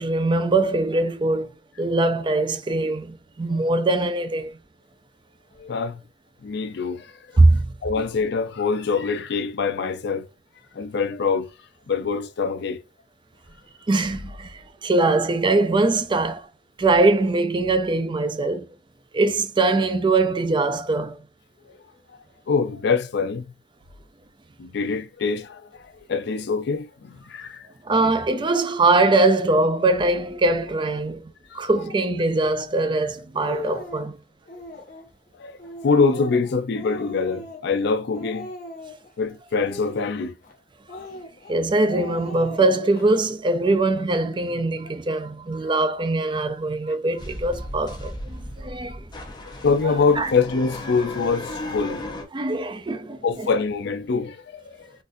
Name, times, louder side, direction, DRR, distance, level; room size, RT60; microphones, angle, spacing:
voice 1, 0.0-1.5 1.8-4.5 7.4-7.7 13.9-16.5 16.8-18.7 19.1-21.2 27.8-31.2 31.5-34.2 41.5-49.0 50.2-50.3 52.3-53.5, right 2 dB, 25° right, 0.4 m, -22 dB
voice 2, 5.6-6.0 6.4-7.1 7.8-10.3 10.7-11.5 11.9-12.8 21.7-21.8 22.5-23.4 24.6-27.7 31.5-31.6 35.4-35.6 35.8-38.5 39.2-40.3 40.9-41.1 45.7-45.8 49.6-52.0 53.2-54.9, left 4 dB, 65° left, 0.4 m, -24 dB
Speech, 31.7-32.0 32.8-32.9 33.2-34.1 34.5-35.1 35.6-37.9 38.1-39.1 39.6-40.5 40.9-41.6 41.9-43.0, left 1 dB, 50° left, 1.0 m, -39 dB
sound 1, 47.2-52.2, left 1 dB, 25° left, 0.7 m, -35 dB
3.9 x 2.5 x 2.5 m
head